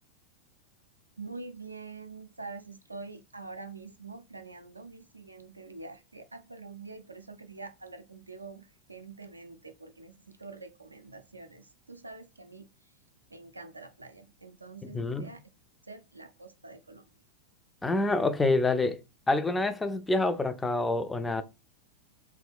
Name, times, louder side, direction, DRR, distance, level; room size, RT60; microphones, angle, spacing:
voice 1, 1.2-12.7 13.3-15.4 15.9-17.0, right 3 dB, 80° right, 0.3 m, -45 dB
voice 2, 14.8-15.3 17.8-19.0 19.3-21.4, left 2 dB, 10° left, 0.4 m, -27 dB
3.1 x 2.2 x 3.5 m
figure-of-eight pair, 90°, 0 cm